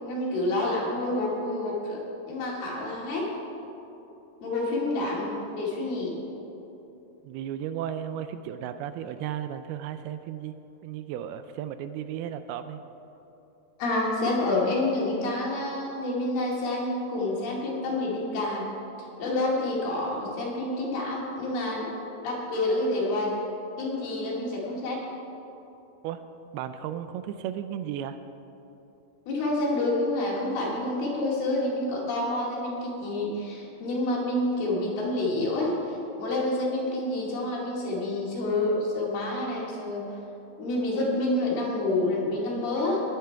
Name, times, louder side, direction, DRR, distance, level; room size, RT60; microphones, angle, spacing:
voice 1, 0.0-2.0 2.3-3.3 4.4-6.1 13.8-18.7 19.2-21.9 22.2-23.4 23.8-25.0 29.3-40.2 40.6-43.0, left 2 dB, 70° left, -4 dB, 4.2 m, -28 dB
voice 2, 7.2-10.5 10.8-12.8 26.0-26.2 26.5-28.2, right 10 dB, 85° right, 10 dB, 2.4 m, -34 dB
20.0 x 8.4 x 4.6 m, 3.0 s
omnidirectional pair, 4.6 m